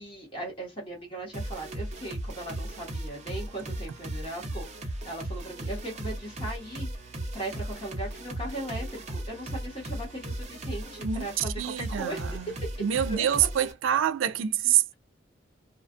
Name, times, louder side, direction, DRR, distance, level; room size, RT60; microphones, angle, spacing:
voice 1, 0.0-12.7 13.1-13.3, right 1 dB, 25° left, 1.1 m, -38 dB
sound 1, 1.3-13.7, right 1 dB, 35° right, 0.7 m, -36 dB
voice 2, 11.0-12.5 12.8-14.9, right 10 dB, 80° right, 0.4 m, -26 dB
2.4 x 2.3 x 2.5 m
head